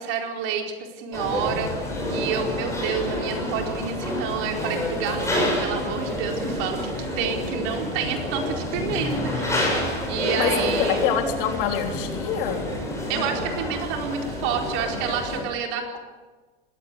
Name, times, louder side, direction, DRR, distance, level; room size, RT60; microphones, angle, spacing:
voice 1, 0.0-9.7 10.1-11.0 13.1-16.0, right 6 dB, 45° right, 2 dB, 4.5 m, -29 dB
sound 1, 1.1-15.4, left 1 dB, 10° left, 7.4 m, -28 dB
voice 2, 10.8-12.6 15.3-15.5, left 9 dB, 55° left, 4 dB, 3.6 m, -26 dB
21.0 x 17.0 x 8.5 m, 1.3 s
supercardioid pair, 135°, 31 cm